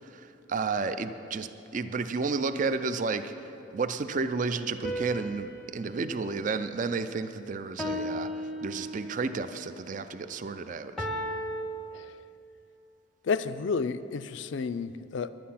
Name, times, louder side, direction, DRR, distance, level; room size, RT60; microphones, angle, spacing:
voice 1, 0.0-8.3 8.6-11.1, right 4 dB, 40° right, 11 dB, 0.4 m, -32 dB
sound 1, 4.8-7.2 7.8-9.3 11.0-11.6, equal, ahead, 0.7 m, -36 dB
voice 2, 13.2-15.3, left 5 dB, 65° left, 13 dB, 0.4 m, -31 dB
10.5 x 10.5 x 5.7 m, 2.9 s
head